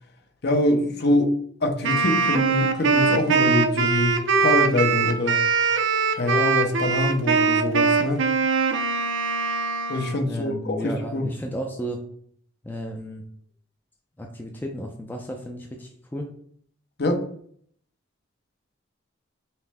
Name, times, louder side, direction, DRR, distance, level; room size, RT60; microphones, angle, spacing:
voice 1, 0.4-1.3 1.6-5.4 6.1-8.2 9.9-10.8 11.1-11.2 17.0-17.2, left 1 dB, 55° left, 4 dB, 0.7 m, -24 dB
Wind instrument woodwind instrument, 1.8-10.2, right 5 dB, 70° right, 0.5 m, -22 dB
voice 2, 10.2-12.0 12.6-13.2 14.2-16.3, equal, 10° left, 1 dB, 0.4 m, -33 dB
5.5 x 2.1 x 3.4 m, 0.62 s
head